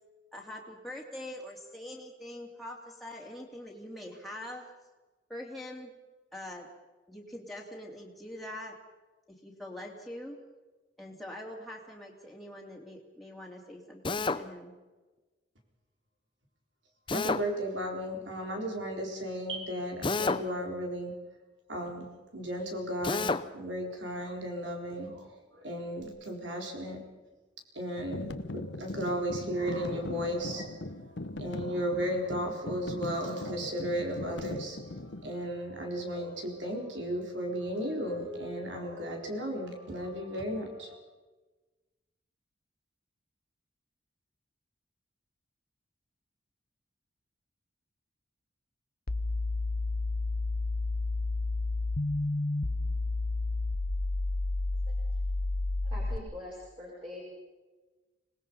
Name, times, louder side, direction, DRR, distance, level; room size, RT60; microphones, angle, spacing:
voice 1, 0.3-4.6 5.3-5.9 6.3-6.7 7.1-8.7 9.3-10.4 11.0-14.7, left 1 dB, ahead, -3 dB, 2.9 m, -43 dB
Drill, 14.0-14.4 17.1-17.4 20.0-20.5 23.0-23.4, left 3 dB, 25° left, 0.6 m, -29 dB
voice 2, 17.1-21.1 21.7-22.1 22.3-27.0 27.7-31.1 31.4-41.0, equal, 75° right, 2 dB, 4.2 m, -35 dB
sound 1, 28.0-35.3, left 2 dB, 75° left, 1.1 m, -40 dB
sound 2, 49.1-56.2, left 2 dB, 50° left, 0.9 m, -31 dB
voice 3, 55.8-57.2, left 1 dB, 30° right, -4 dB, 5.4 m, -43 dB
25.5 x 19.0 x 5.5 m, 1.2 s
head